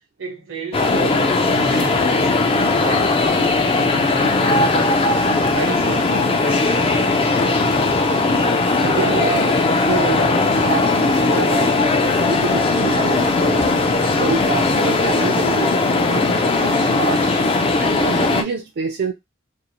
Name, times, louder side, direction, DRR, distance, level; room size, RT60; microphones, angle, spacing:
voice 1, 0.2-5.2 5.5-7.2, right 3 dB, 80° right, 0.9 m, -32 dB
sound 1, 0.7-18.4, left 3 dB, 30° left, 0.3 m, -18 dB
voice 2, 8.8-13.7 14.2-17.3 17.8-19.1, right 4 dB, 55° right, 0.4 m, -27 dB
2.6 x 2.0 x 2.8 m
head